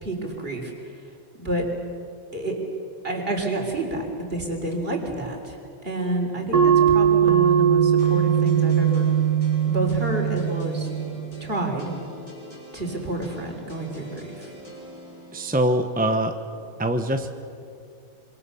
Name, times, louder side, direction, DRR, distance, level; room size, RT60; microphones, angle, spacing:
voice 1, 0.0-0.7 1.4-1.6 2.3-2.6 3.0-5.6 5.8-9.1 9.7-10.9 11.4-11.9 12.7-14.5, right 1 dB, 25° right, 2 dB, 4.0 m, -29 dB
sound 1, 6.5-11.6, right 9 dB, 50° right, 1.6 m, -20 dB
sound 2, 8.0-15.6, left 1 dB, 20° left, 5.5 m, -44 dB
voice 2, 15.3-16.3 16.8-17.3, right 1 dB, 10° right, 6 dB, 0.5 m, -23 dB
26.0 x 25.5 x 7.1 m, 2.4 s
omnidirectional pair, 2.2 m